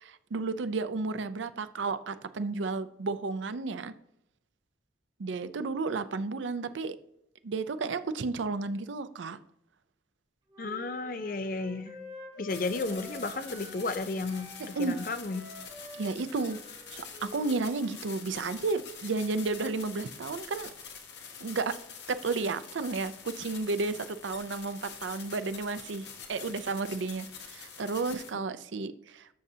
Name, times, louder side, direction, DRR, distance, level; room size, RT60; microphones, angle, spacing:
voice 1, 0.0-3.9 5.2-7.0 7.4-9.4 14.8-15.0 15.9-16.6 16.9-20.7 21.4-21.7 22.1-29.3, right 3 dB, 90° right, 0.5 m, -32 dB
Wind instrument woodwind instrument, 10.5-14.0 14.3-18.1, left 1 dB, 30° right, 3.3 m, -49 dB
voice 2, 10.6-11.9 12.4-15.4, left 3 dB, 50° left, 0.6 m, -33 dB
sound 1, 12.5-28.3, left 6 dB, 70° left, 1.3 m, -46 dB
12.0 x 6.7 x 2.8 m
head